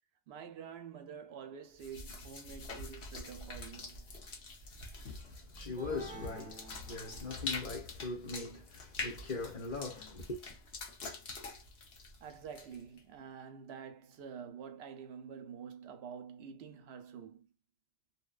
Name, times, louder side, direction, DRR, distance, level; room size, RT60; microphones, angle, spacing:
voice 1, 0.3-4.0 12.2-17.5, right 7 dB, 85° right, 0.8 m, -48 dB
sound 1, 1.8-13.0, left 3 dB, 85° left, 1.1 m, -45 dB
voice 2, 5.0-10.4, left 3 dB, 50° left, 0.8 m, -41 dB
sound 2, 5.8-7.6, equal, 10° right, 0.5 m, -50 dB
2.7 x 2.2 x 2.3 m
omnidirectional pair, 1.1 m